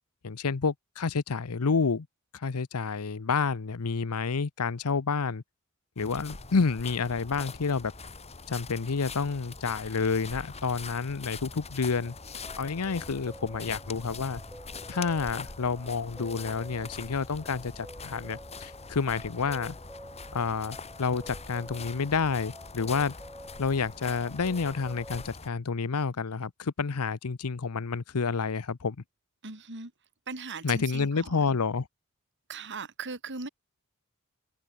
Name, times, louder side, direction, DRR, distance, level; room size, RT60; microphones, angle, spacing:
voice 1, 0.2-2.1 2.3-5.4 6.0-7.9 8.5-12.1 12.6-14.4 14.9-19.8 20.3-23.1 23.6-29.0 30.6-31.9, left 5 dB, 80° left, 0.7 m, -29 dB
sound 1, 6.0-25.5, left 4 dB, 30° left, 2.2 m, -43 dB
sound 2, 12.0-25.3, right 1 dB, 5° right, 3.1 m, -50 dB
voice 2, 29.4-29.9 30.3-31.6 32.5-33.5, right 4 dB, 55° right, 3.2 m, -39 dB
head